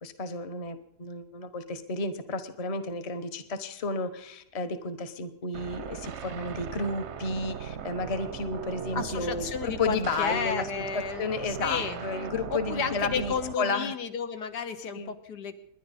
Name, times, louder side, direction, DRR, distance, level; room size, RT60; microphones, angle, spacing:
voice 1, 0.0-10.7 10.9-13.9 14.9-15.1, left 3 dB, 30° left, 9 dB, 0.8 m, -32 dB
sound 1, 5.5-13.5, right 8 dB, 55° right, 0.8 m, -39 dB
voice 2, 8.9-12.0 12.5-15.5, left 6 dB, 80° left, 8 dB, 1.7 m, -32 dB
28.5 x 10.5 x 4.1 m, 0.76 s
omnidirectional pair, 1.7 m